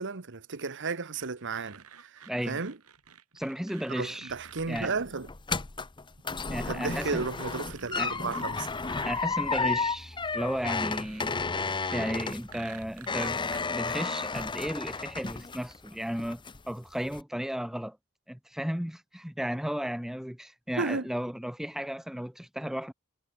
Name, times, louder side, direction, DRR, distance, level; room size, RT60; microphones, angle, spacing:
voice 1, 0.0-2.8 3.9-5.3 6.7-8.7 9.6-9.7 20.8-21.1, right 4 dB, 55° right, 1.3 m, -34 dB
sound 1, 1.1-5.0 6.2-6.3 6.8-9.3 10.2-13.6, right 6 dB, 90° right, 5.7 m, -50 dB
voice 2, 2.3-2.6 3.3-4.3 4.7-4.9 6.5-7.2 7.9-8.1 9.0-11.4 11.9-18.0 18.3-22.9, equal, ahead, 0.5 m, -34 dB
sound 2, 4.3-15.9 16.2-16.7 17.1-17.2, left 4 dB, 20° left, 0.8 m, -32 dB
head